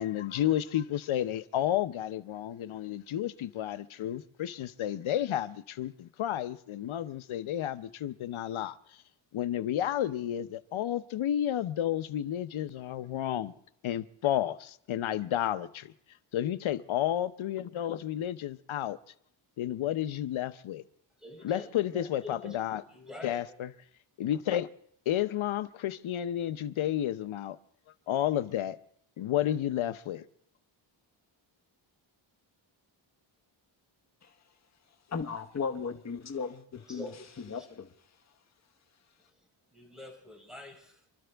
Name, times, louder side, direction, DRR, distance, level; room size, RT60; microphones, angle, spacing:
voice 1, 0.0-8.8 9.3-13.5 13.8-15.9 16.3-19.0 19.6-20.8 21.4-22.8 23.2-23.7 24.2-24.7 25.1-27.6 28.1-28.8 29.2-30.2, left 11 dB, 75° left, 0.9 m, -31 dB
voice 2, 21.2-22.6 22.9-23.6 36.9-37.7 39.7-41.0, left 1 dB, ahead, 4.5 m, -46 dB
voice 3, 35.1-37.1 37.5-37.9, left 5 dB, 35° left, 1.1 m, -36 dB
27.5 x 12.5 x 3.5 m
cardioid pair, 95°, 49 cm